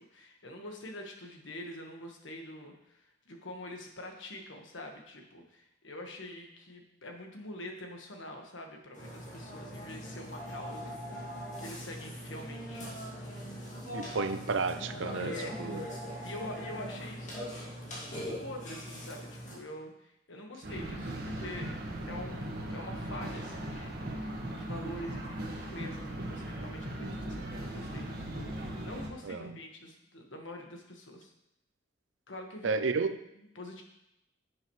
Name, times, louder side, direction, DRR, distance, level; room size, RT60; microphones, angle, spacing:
voice 1, 0.1-11.3 11.6-12.9 15.2-15.7 16.2-17.6 18.4-21.7 22.1-25.2 25.7-31.3 32.3-32.8 33.4-33.8, left 1 dB, 80° left, 3 dB, 1.5 m, -45 dB
Burping eructation, 8.9-19.5, equal, 40° left, 2.3 m, -41 dB
voice 2, 13.9-15.3 15.6-15.8 29.2-29.6 32.6-33.2, right 4 dB, 80° right, 10 dB, 0.6 m, -32 dB
sound 1, 20.6-29.1, right 1 dB, 55° right, 1.6 m, -38 dB
11.0 x 7.5 x 3.2 m, 0.83 s
head